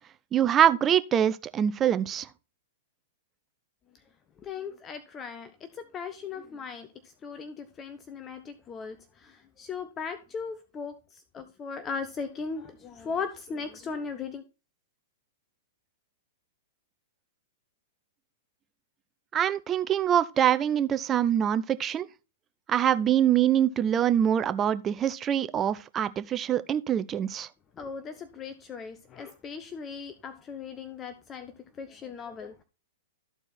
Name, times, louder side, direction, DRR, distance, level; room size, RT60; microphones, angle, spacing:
voice 1, 0.3-2.3 19.3-22.1 22.7-27.5, right 10 dB, 25° right, 0.6 m, -24 dB
voice 2, 4.4-6.9 7.2-10.9 11.3-14.4 27.8-31.5 31.8-32.6, left 5 dB, 25° left, 0.8 m, -38 dB
13.5 x 4.5 x 4.2 m
hypercardioid pair, 110°, 0 cm